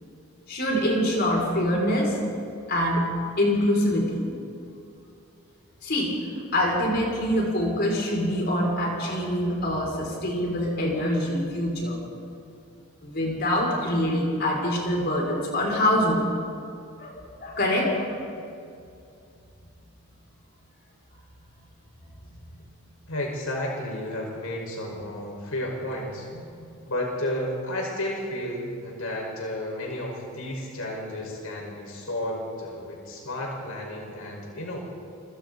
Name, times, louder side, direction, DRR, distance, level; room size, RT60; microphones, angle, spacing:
voice 1, 0.5-2.2 2.7-3.1 3.4-4.3 5.8-12.0 13.0-16.3 17.0-18.1 26.6-26.7, left 1 dB, 45° left, -2 dB, 6.3 m, -25 dB
voice 2, 23.1-26.3 26.9-34.8, left 1 dB, 75° left, -1 dB, 5.4 m, -32 dB
29.5 x 26.5 x 4.2 m, 2.5 s
head